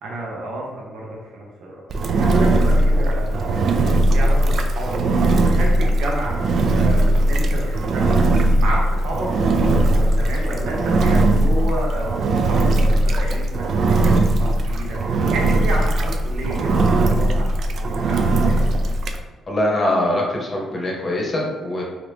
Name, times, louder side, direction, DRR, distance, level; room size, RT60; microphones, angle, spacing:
voice 1, 0.0-1.8 2.1-3.5 4.1-6.4 6.7-9.3 9.6-18.6, right 1 dB, 80° right, -2 dB, 0.7 m, -31 dB
Engine, 1.9-19.2, right 2 dB, 60° right, 0.3 m, -19 dB
voice 2, 19.5-21.8, left 1 dB, 30° left, -2 dB, 0.9 m, -22 dB
2.9 x 2.5 x 3.3 m, 1.3 s
cardioid pair, 90°, 0 cm